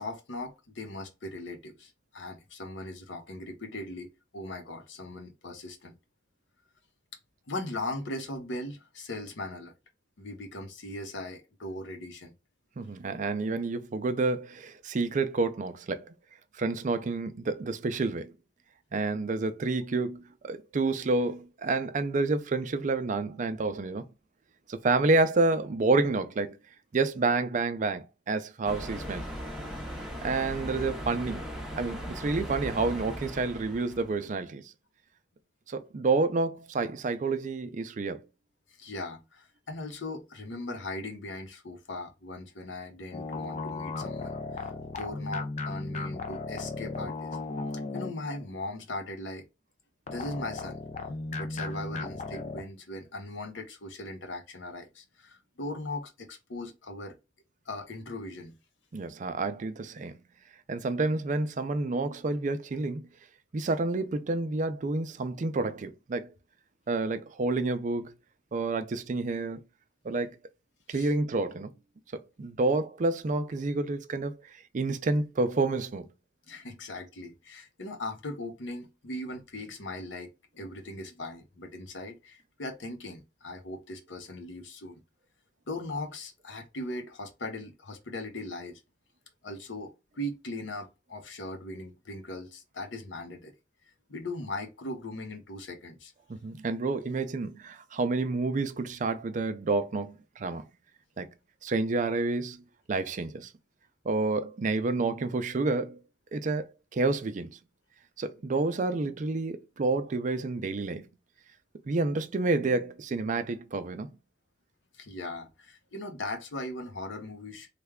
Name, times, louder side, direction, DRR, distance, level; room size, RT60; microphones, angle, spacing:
voice 1, 0.0-5.9 7.5-9.7 10.2-12.3 38.8-44.4 44.6-47.4 47.9-49.5 50.1-50.8 51.4-57.2 57.7-58.5 70.9-71.1 76.5-80.3 80.5-85.0 85.7-88.8 89.4-93.5 94.1-96.1 114.9-117.7, left 2 dB, 90° left, 0.8 m, -39 dB
voice 2, 12.8-16.1 16.6-18.3 18.9-24.1 24.7-26.6 26.9-29.2 30.2-31.5 31.8-34.6 35.7-38.3 58.9-60.2 60.7-63.1 63.5-66.3 66.9-68.1 68.5-69.6 70.0-70.4 70.9-71.7 72.1-74.4 74.7-76.1 96.3-100.7 101.2-101.3 101.6-102.6 102.9-103.5 104.0-106.0 106.3-107.6 108.2-111.1 111.9-114.1, right 3 dB, 45° right, 0.4 m, -29 dB
sound 1, 28.6-34.2, equal, 5° right, 0.7 m, -38 dB
sound 2, 43.1-48.5 50.1-52.6, left 3 dB, 40° left, 0.4 m, -36 dB
3.3 x 2.2 x 3.5 m
head